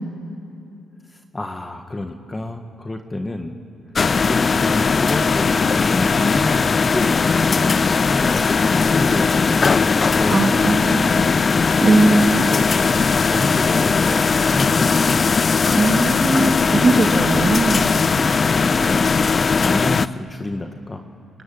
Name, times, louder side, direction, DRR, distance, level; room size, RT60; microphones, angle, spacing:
voice 1, 1.1-3.6 4.2-11.4 12.4-15.1 16.9-17.2 18.5-19.1 19.6-21.1, left 2 dB, 20° left, 5 dB, 1.6 m, -29 dB
sound 1, 3.9-20.1, left 5 dB, 35° left, 0.5 m, -18 dB
voice 2, 10.3-11.1 11.8-12.5 15.7-17.9, right 3 dB, 35° right, 4 dB, 2.4 m, -19 dB
23.5 x 21.0 x 9.6 m, 2.7 s
cardioid pair, 90°, 0 cm